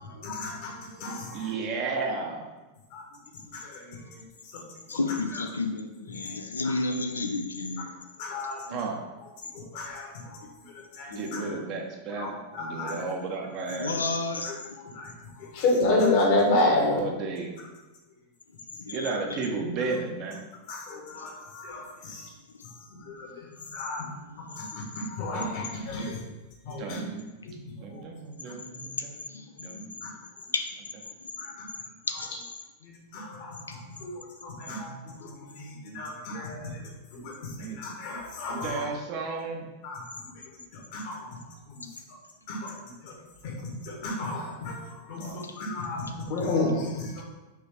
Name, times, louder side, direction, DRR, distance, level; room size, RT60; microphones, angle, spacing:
voice 1, 0.0-1.5 2.9-3.0 3.5-4.2 4.5-4.6 5.3-5.4 6.2-6.3 6.6-6.7 8.2-8.6 9.5-10.5 11.0-11.5 12.2-12.9 14.4-17.0 20.7-22.3 22.9-23.5 23.7-24.1 24.4-26.1 26.6-27.0 27.4-27.6 27.9-28.0 30.0-30.1 31.4-31.5 32.8-34.9 35.2-36.8 37.1-38.9 39.8-40.1 40.7-41.4 41.7-41.8 42.5-42.7 43.0-43.1 43.4-47.2, left 2 dB, 50° left, 0 dB, 1.1 m, -31 dB
voice 2, 1.3-2.5 8.7-9.0 11.1-14.1 16.7-17.5 18.9-20.4 26.8-30.0 34.7-36.3 37.6-37.8 38.5-39.7 45.2-45.5, right 4 dB, 40° right, 1 dB, 0.7 m, -34 dB
voice 3, 4.9-7.9 8.7-8.8 11.1-11.5 12.9-13.1 13.7-14.5 18.8-19.2 21.2-21.3 28.9-30.1 30.5-30.7 32.1-32.3 33.7-33.8 35.5-35.7 37.6-37.7 45.2-45.5, left 3 dB, 75° left, 6 dB, 0.3 m, -32 dB
4.7 x 3.3 x 3.3 m, 1.1 s
figure-of-eight pair, 90°, 0 cm